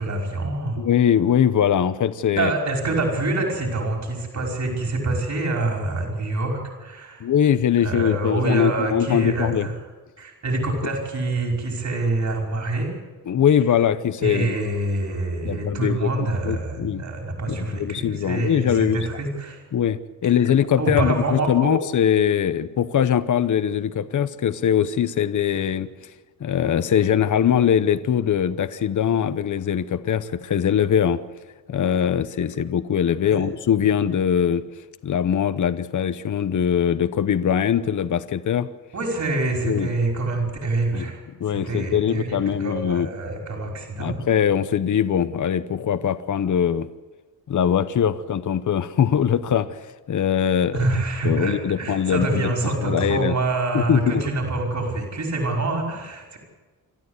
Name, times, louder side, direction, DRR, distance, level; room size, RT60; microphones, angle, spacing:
voice 1, 0.0-0.8 2.4-7.3 7.8-9.8 10.2-13.0 14.2-19.6 20.2-20.3 20.8-21.7 33.2-33.5 38.9-41.2 41.5-44.2 50.7-56.4, right 2 dB, 50° right, 1 dB, 5.4 m, -26 dB
voice 2, 0.8-2.5 7.2-9.7 13.3-14.6 15.4-17.0 17.5-19.0 19.7-25.9 26.4-31.2 31.7-34.6 35.0-38.7 39.6-39.9 40.9-41.0 41.4-43.1 44.0-46.9 47.5-49.8 50.1-50.9 51.2-52.5 52.8-53.4 53.7-54.2, left 8 dB, 55° left, 13 dB, 0.9 m, -21 dB
27.0 x 13.5 x 8.2 m, 1.3 s
wide cardioid pair, 130°, 37 cm